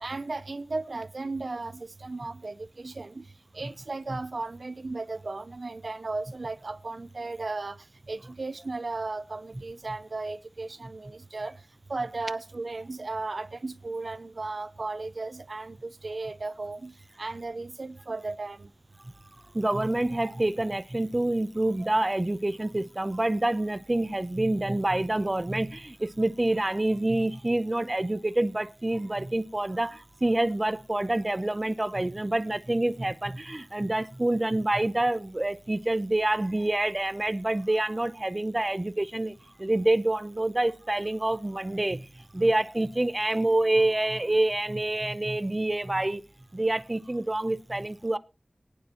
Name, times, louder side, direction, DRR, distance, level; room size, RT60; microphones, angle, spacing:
voice 1, 0.0-3.3 3.5-11.6 11.9-18.7, right 3 dB, 75° right, 0.5 m, -35 dB
voice 2, 19.5-46.2 46.5-48.2, right 1 dB, 35° right, 0.7 m, -27 dB
22.0 x 9.6 x 3.0 m
wide cardioid pair, 45°, 0 cm